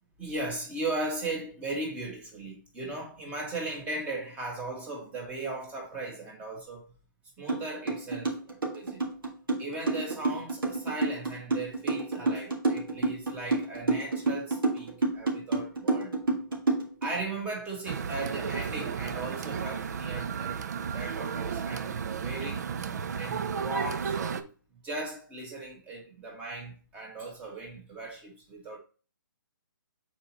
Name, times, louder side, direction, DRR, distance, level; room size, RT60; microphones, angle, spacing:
voice 1, 0.2-6.9 7.4-9.0 9.6-16.1 17.0-22.7 23.2-24.5 24.8-28.8, right 2 dB, 10° right, 1.6 m, -37 dB
sound 1, 7.5-7.6 7.9-17.1, right 3 dB, 90° right, 2.0 m, -28 dB
sound 2, 17.9-24.4, right 6 dB, 50° right, 0.6 m, -33 dB
7.6 x 4.3 x 3.0 m
hypercardioid pair, 155°, 11 cm